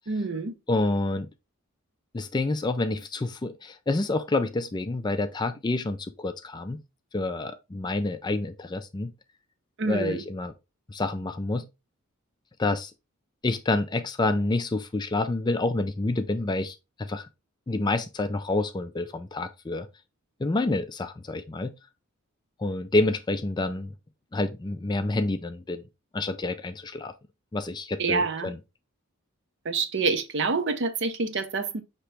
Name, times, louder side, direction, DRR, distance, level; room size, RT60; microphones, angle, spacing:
voice 1, 0.1-0.5 9.8-10.2 28.0-28.5 29.7-31.8, right 4 dB, 55° right, 0.6 m, -27 dB
voice 2, 0.7-1.3 2.1-6.8 7.1-9.1 9.8-10.5 10.9-11.7 12.6-12.9 13.4-17.3 17.7-19.9 20.4-21.7 22.6-23.9 24.3-25.8 26.1-27.1 27.5-28.6, left 2 dB, 20° left, 0.3 m, -28 dB
5.6 x 3.0 x 3.2 m
head